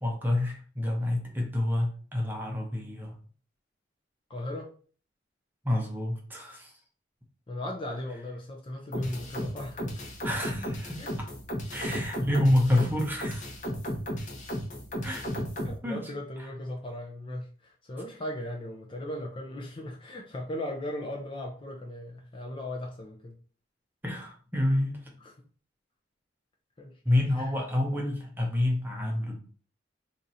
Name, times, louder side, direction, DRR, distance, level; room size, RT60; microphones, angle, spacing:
voice 1, 0.0-3.1 5.6-6.7 10.2-11.0 11.7-13.5 15.0-15.2 15.8-16.1 16.4-16.5 24.0-25.1 27.0-29.4, left 1 dB, 10° right, 0 dB, 0.7 m, -28 dB
voice 2, 4.3-4.7 7.5-10.1 11.0-11.1 15.6-23.4 25.2-25.3 26.8-27.0 27.4-27.5, left 1 dB, 25° left, 0 dB, 0.5 m, -37 dB
sound 1, 8.9-15.8, equal, 40° left, 0.9 m, -34 dB
2.9 x 2.5 x 4.0 m, 0.41 s
head